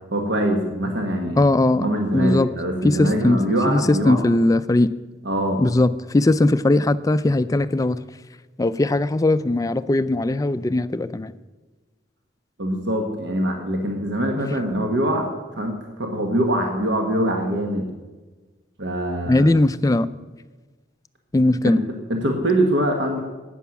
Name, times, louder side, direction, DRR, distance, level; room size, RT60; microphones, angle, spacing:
voice 1, 0.1-1.4 1.7-4.2 5.2-5.6 12.6-17.9 18.8-19.5 21.6-23.2, right 1 dB, 70° right, 3 dB, 1.3 m, -23 dB
voice 2, 1.4-1.9 2.1-2.5 2.8-3.4 3.7-4.9 5.6-8.0 8.6-11.3 19.3-20.1 21.3-21.8, left 2 dB, 20° left, 14 dB, 0.3 m, -19 dB
12.5 x 9.1 x 6.0 m, 1.2 s
head